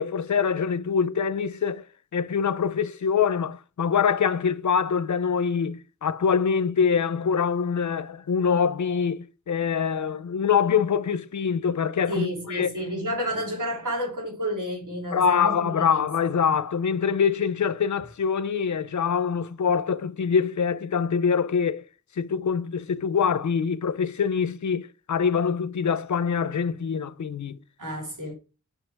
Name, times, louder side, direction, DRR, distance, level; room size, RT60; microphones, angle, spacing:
voice 1, 0.0-1.8 2.1-12.9 15.1-21.8 22.2-27.6, left 6 dB, 70° left, 0.7 m, -24 dB
voice 2, 12.1-16.1 27.8-28.3, equal, 90° right, 3.4 m, -30 dB
5.9 x 5.6 x 4.5 m
wide cardioid pair, 70°, 30 cm